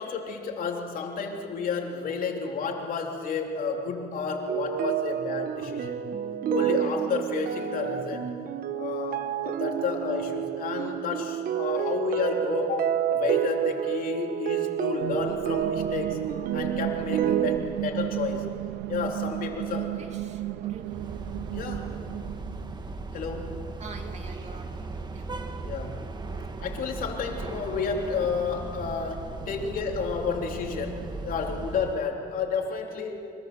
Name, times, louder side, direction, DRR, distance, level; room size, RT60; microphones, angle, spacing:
voice 1, 0.0-6.0 6.5-8.3 8.8-16.2 16.5-18.5 18.9-19.9 21.5-21.9 23.1-23.6 25.6-26.1 26.6-33.4, left 5 dB, 55° left, 2 dB, 3.3 m, -31 dB
sound 1, 4.5-17.6, right 10 dB, 60° right, 1.1 m, -29 dB
sound 2, 15.0-22.8, right 15 dB, 85° right, 0.5 m, -34 dB
voice 2, 19.7-21.1 23.8-25.3, right 4 dB, 40° right, 4 dB, 2.7 m, -45 dB
sound 3, 20.8-32.0, right 3 dB, 25° right, 1.7 m, -37 dB
25.5 x 21.5 x 6.9 m, 2.6 s
cardioid pair, 110°, 17 cm